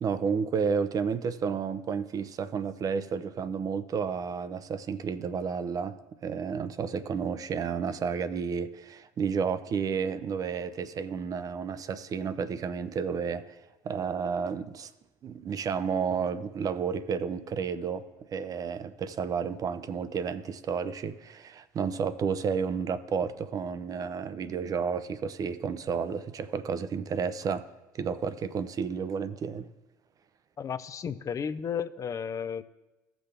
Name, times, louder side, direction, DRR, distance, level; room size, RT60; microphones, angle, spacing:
voice 1, 0.0-14.9 15.2-27.7 27.9-29.7, right 6 dB, 40° right, 0.6 m, -31 dB
voice 2, 30.6-32.6, left 7 dB, 35° left, 0.6 m, -33 dB
16.0 x 6.1 x 3.4 m
hypercardioid pair, 70°, 9 cm